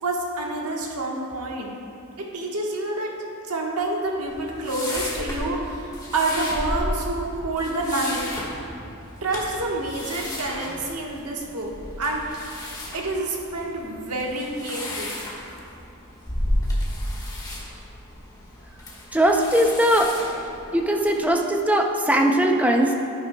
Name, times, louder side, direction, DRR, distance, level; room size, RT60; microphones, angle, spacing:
voice 1, 0.0-1.7 2.2-3.1 3.5-8.3 8.6-8.8 9.2-11.7 12.0-12.2 12.9-15.1, right 2 dB, 85° right, -1 dB, 1.3 m, -28 dB
sound 1, 4.3-21.2, left 1 dB, 15° left, 1.4 m, -33 dB
voice 2, 19.1-20.1 20.7-22.9, right 1 dB, 5° right, 2 dB, 0.5 m, -20 dB
10.5 x 10.5 x 2.3 m, 2.8 s
head